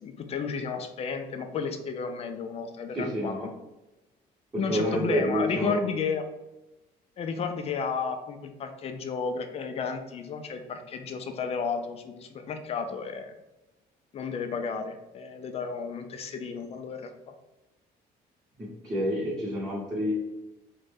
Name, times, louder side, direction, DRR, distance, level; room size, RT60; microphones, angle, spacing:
voice 1, 0.0-3.5 4.6-6.2 7.2-13.3 14.1-17.3, left 5 dB, 35° left, 6 dB, 0.4 m, -33 dB
voice 2, 2.9-3.5 4.5-5.8 18.6-20.1, equal, 20° right, -8 dB, 0.8 m, -28 dB
2.5 x 2.1 x 3.3 m, 1.0 s
cardioid pair, 110°, 17 cm